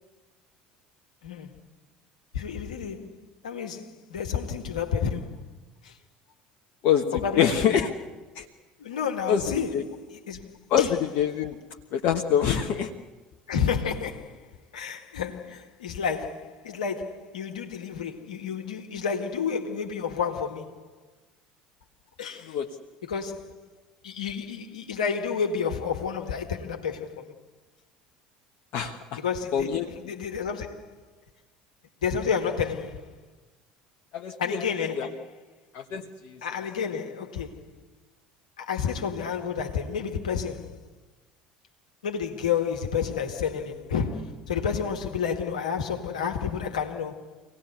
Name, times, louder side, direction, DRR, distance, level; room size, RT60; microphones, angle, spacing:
voice 1, 1.2-1.5 2.3-3.2 3.4-5.4 5.8-6.0 7.1-7.9 8.8-10.5 10.8-10.9 13.5-14.4 14.7-20.9 22.2-22.6 23.0-23.7 24.0-27.3 29.2-31.0 32.0-33.1 34.4-35.3 36.4-37.8 38.6-40.8 42.0-47.3, left 6 dB, 75° left, 1.9 m, -30 dB
voice 2, 6.8-7.9 8.3-8.4 9.3-9.4 9.7-9.8 10.7-11.6 11.9-12.9 22.5-22.7 28.7-29.2 29.5-29.9 34.1-34.6 35.0-35.1 35.7-36.4, left 8 dB, 55° left, 1.3 m, -25 dB
25.5 x 18.0 x 8.3 m
figure-of-eight pair, 65°, 4 cm